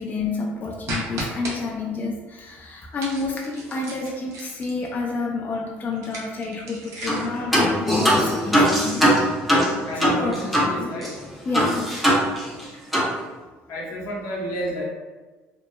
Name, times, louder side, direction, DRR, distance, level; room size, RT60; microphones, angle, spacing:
voice 1, 0.0-9.2 10.0-10.4 10.6-11.0 11.5-12.0 12.8-12.9, left 3 dB, 35° left, -1 dB, 0.3 m, -29 dB
sound 1, 0.9-1.6 3.0-4.9 5.9-7.4, right 1 dB, 60° right, 0.7 m, -34 dB
sound 2, 7.1-7.2 7.5-10.7 11.0-11.1 11.5-12.6 12.9-13.1, equal, ahead, 0.7 m, -20 dB
voice 2, 9.8-11.1 12.5-12.6 13.7-14.8, equal, 75° left, -4 dB, 0.8 m, -31 dB
2.8 x 2.1 x 2.2 m, 1.3 s
supercardioid pair, 85°, 5 cm